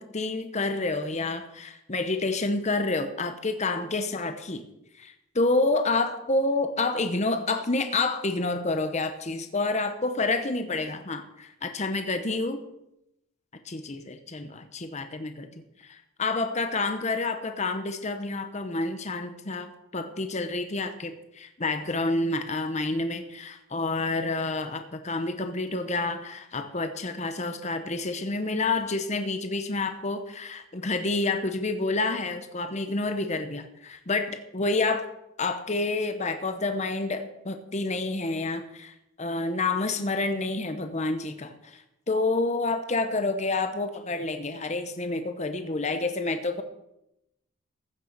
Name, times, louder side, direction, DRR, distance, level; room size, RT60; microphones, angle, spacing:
voice 1, 0.0-4.7 4.9-12.6 13.6-15.5 15.8-35.1 35.4-46.6, left 3 dB, 35° left, 8 dB, 0.9 m, -29 dB
15.5 x 6.7 x 6.7 m, 0.85 s
head